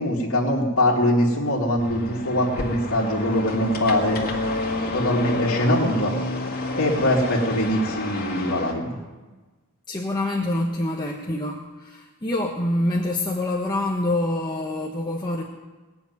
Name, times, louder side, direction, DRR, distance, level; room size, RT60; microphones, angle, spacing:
voice 1, 0.0-4.2 4.9-6.1 6.7-9.0, left 1 dB, 75° left, -7 dB, 2.3 m, -22 dB
sound 1, 1.8-8.7, left 2 dB, 45° left, 2.1 m, -29 dB
voice 2, 9.9-15.4, left 1 dB, 20° left, -1 dB, 1.2 m, -26 dB
19.5 x 7.0 x 9.4 m, 1.3 s
head